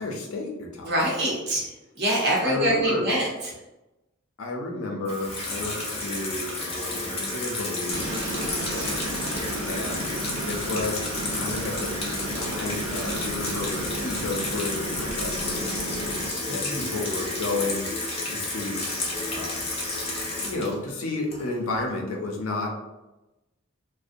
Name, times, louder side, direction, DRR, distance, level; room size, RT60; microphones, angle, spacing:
voice 1, 0.0-0.9 2.4-3.1 4.4-9.0 9.6-15.7 16.5-17.9 18.3-18.9 19.3-19.6 20.3-22.7, left 2 dB, 85° left, 1 dB, 0.6 m, -32 dB
voice 2, 0.8-1.6 2.0-3.3 9.1-9.5 16.5-16.9, right 1 dB, 50° right, -4 dB, 0.8 m, -25 dB
Water tap faucet / Sink (filling or washing), 5.1-21.8, left 2 dB, 30° left, 0.5 m, -31 dB
sound 1, 7.9-16.3, right 1 dB, 80° right, 0.5 m, -33 dB
2.5 x 2.1 x 2.5 m, 1.0 s
head